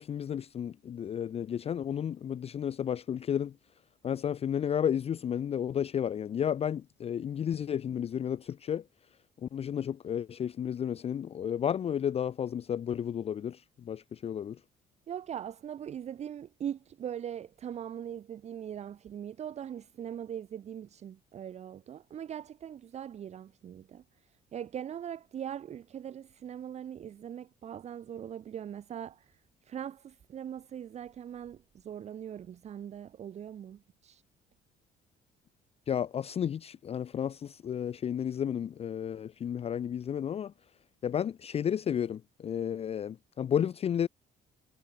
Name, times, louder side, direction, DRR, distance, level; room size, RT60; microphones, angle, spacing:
voice 1, 0.0-3.5 4.0-8.8 9.4-14.6 35.9-40.5 41.0-44.1, left 9 dB, 35° left, 0.5 m, -32 dB
voice 2, 15.1-34.2, right 9 dB, 40° right, 0.7 m, -41 dB
cardioid pair, 110°, 17 cm